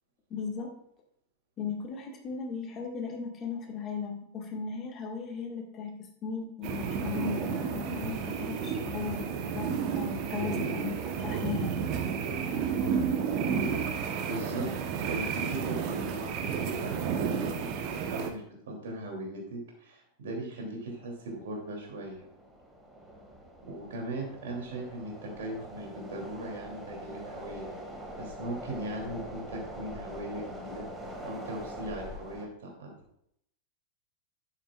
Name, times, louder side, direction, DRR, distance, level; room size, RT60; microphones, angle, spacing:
voice 1, 0.3-0.8 1.6-11.8, left 6 dB, 30° left, 2 dB, 1.8 m, -37 dB
sound 1, 6.6-18.3, right 6 dB, 40° right, 1.1 m, -31 dB
voice 2, 14.3-14.7 15.1-17.5 18.1-22.3 23.6-27.7 28.2-30.9 31.2-32.9, right 1 dB, 60° right, 0 dB, 3.0 m, -39 dB
sound 2, 20.9-32.4, equal, 10° right, 2.0 m, -44 dB
11.0 x 8.8 x 2.5 m, 0.73 s
figure-of-eight pair, 90°, 0 cm